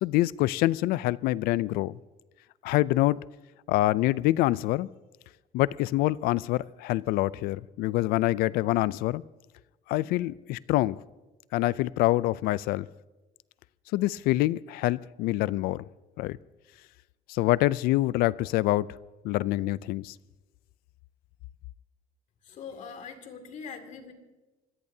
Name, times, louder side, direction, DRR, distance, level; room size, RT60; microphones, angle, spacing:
voice 1, 0.0-2.0 2.6-3.2 3.7-4.9 5.5-9.2 9.9-11.0 11.5-12.9 13.9-15.8 16.2-16.4 17.3-18.9 19.2-20.1, left 17 dB, 80° left, 0.4 m, -26 dB
voice 2, 22.5-24.1, left 6 dB, 55° left, 2.3 m, -42 dB
26.0 x 17.5 x 2.8 m
cardioid pair, 125°, 15 cm